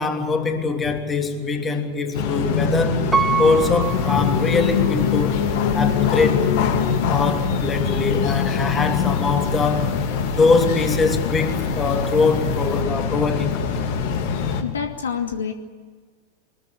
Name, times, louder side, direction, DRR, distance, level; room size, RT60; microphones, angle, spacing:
voice 1, 0.0-3.1 3.4-5.4 5.7-6.5 7.1-9.9 10.4-13.6, left 4 dB, 15° left, 4 dB, 3.1 m, -22 dB
sound 1, 2.1-14.6, left 6 dB, 50° left, 2.8 m, -23 dB
Piano, 3.1-5.1 5.7-5.8, right 6 dB, 10° right, 1.1 m, -25 dB
sound 2, 3.8-14.3, left 5 dB, 35° left, 4.7 m, -38 dB
voice 2, 14.6-15.5, left 7 dB, 65° left, 4 dB, 2.5 m, -27 dB
24.5 x 21.0 x 8.6 m, 1.5 s
figure-of-eight pair, 90°, 0 cm